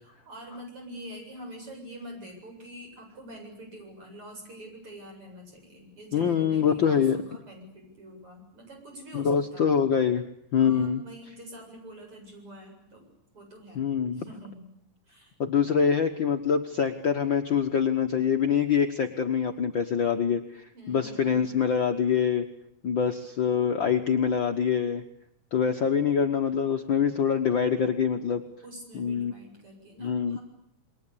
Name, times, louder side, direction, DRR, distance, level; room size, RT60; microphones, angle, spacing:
voice 1, 0.0-9.7 10.6-13.1 13.3-13.8 14.1-14.7 15.1-15.3 20.7-21.4 28.6-30.4, equal, 35° right, 2 dB, 8.6 m, -45 dB
voice 2, 6.1-7.2 9.1-10.2 10.5-11.0 13.7-14.2 15.4-22.5 22.8-25.0 25.5-28.4 28.9-29.3 30.0-30.4, left 7 dB, 70° left, 5 dB, 1.1 m, -25 dB
28.5 x 22.5 x 8.6 m, 0.74 s
omnidirectional pair, 4.1 m